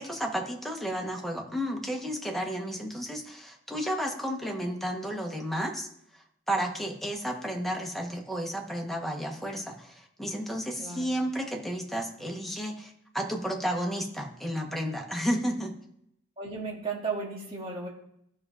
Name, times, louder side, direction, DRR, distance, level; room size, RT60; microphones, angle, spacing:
voice 1, 0.0-5.9 6.5-15.7, equal, ahead, 1 dB, 1.0 m, -32 dB
voice 2, 10.8-11.1 16.4-17.9, right 4 dB, 30° right, -3 dB, 2.1 m, -34 dB
13.5 x 5.4 x 2.4 m, 0.73 s
head